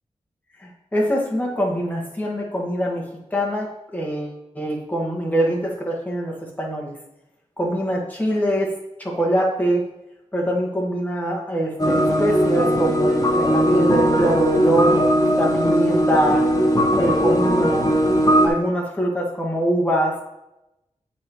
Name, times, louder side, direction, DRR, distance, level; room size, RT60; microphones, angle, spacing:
voice 1, 0.6-6.9 7.6-8.7 9.0-9.8 10.3-15.0 15.4-16.5 17.0-17.9 18.4-20.2, equal, 15° left, -2 dB, 1.6 m, -23 dB
sound 1, 11.8-18.5, equal, 30° left, 1.0 m, -19 dB
8.4 x 5.7 x 3.1 m, 0.90 s
wide cardioid pair, 120°, 12 cm